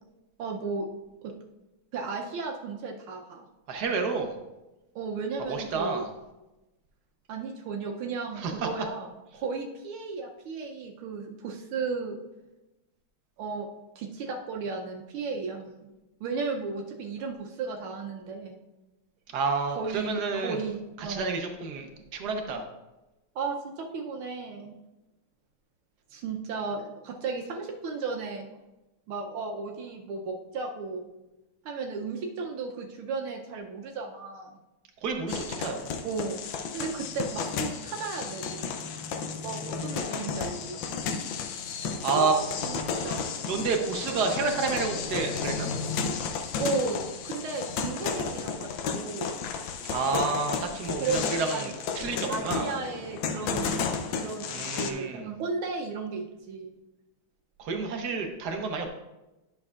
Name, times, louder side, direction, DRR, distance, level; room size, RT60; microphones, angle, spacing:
voice 1, 0.4-0.9 1.2-1.3 1.9-3.5 4.9-6.0 7.3-12.2 13.4-13.7 13.9-15.7 16.2-18.6 19.8-21.3 23.3-24.8 26.1-28.5 29.1-31.1 31.6-34.6 36.0-36.4 36.7-38.7 39.4-40.8 42.1-43.2 46.6-49.4 51.0-51.7 52.3-53.8 54.2-56.7, right 4 dB, 80° right, 1 dB, 1.6 m, -34 dB
voice 2, 3.7-4.4 5.5-6.1 8.4-8.7 19.3-20.6 21.0-22.7 35.0-35.9 42.0-42.3 43.5-45.7 49.8-52.7 54.5-55.3 57.6-58.9, right 4 dB, 60° right, 4 dB, 1.3 m, -30 dB
sound 1, 35.3-54.9, left 5 dB, 70° left, 1.4 m, -33 dB
10.5 x 6.5 x 2.4 m, 1.0 s
omnidirectional pair, 2.3 m